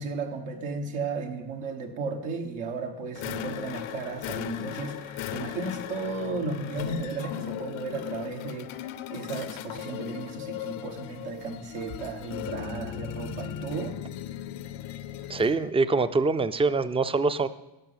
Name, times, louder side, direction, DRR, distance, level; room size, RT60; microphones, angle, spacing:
voice 1, 0.0-8.8 9.1-14.0, right 3 dB, 85° right, 3 dB, 1.5 m, -34 dB
sound 1, 3.2-15.7, left 11 dB, 75° left, 0.7 m, -37 dB
voice 2, 15.3-17.5, right 3 dB, 15° right, 13 dB, 0.3 m, -24 dB
12.0 x 5.8 x 5.7 m, 1.0 s
cardioid pair, 80°, 47 cm